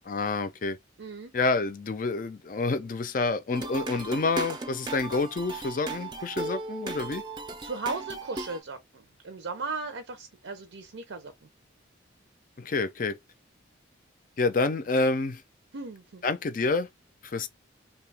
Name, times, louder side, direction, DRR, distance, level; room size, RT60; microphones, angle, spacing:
voice 1, 0.1-0.8 1.3-7.2 12.6-13.2 14.4-15.4 16.2-16.9 17.2-17.5, left 3 dB, 45° left, 0.4 m, -28 dB
voice 2, 1.0-1.3 7.6-11.3 15.7-16.2, right 4 dB, 75° right, 0.6 m, -36 dB
sound 1, 3.5-8.6, right 3 dB, 20° right, 0.4 m, -37 dB
2.8 x 2.3 x 3.3 m
head